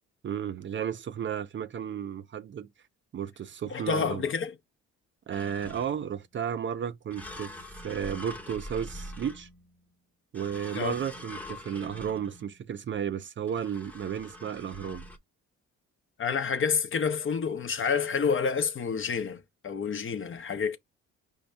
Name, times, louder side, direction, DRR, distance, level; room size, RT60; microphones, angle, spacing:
voice 1, 0.2-2.7 3.1-4.2 5.3-7.5 7.8-9.5 10.3-15.0, right 8 dB, 40° right, 0.5 m, -33 dB
voice 2, 3.7-4.5 10.7-11.0 16.2-20.8, left 6 dB, 40° left, 0.8 m, -29 dB
sound 1, 5.3-6.1 7.1-9.8 10.3-12.6 13.5-15.2, left 1 dB, 5° left, 0.8 m, -44 dB
5.3 x 2.8 x 3.3 m
cardioid pair, 90°, 30 cm